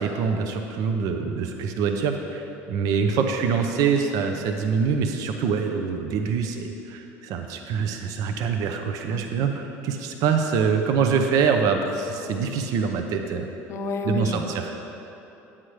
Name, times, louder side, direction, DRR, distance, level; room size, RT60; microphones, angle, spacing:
voice 1, 0.0-13.5 14.0-14.7, right 6 dB, 65° right, 4 dB, 0.6 m, -25 dB
voice 2, 13.7-14.7, left 3 dB, 45° left, 6 dB, 0.7 m, -30 dB
9.6 x 8.9 x 3.2 m, 3.0 s
supercardioid pair, 95°, 6 cm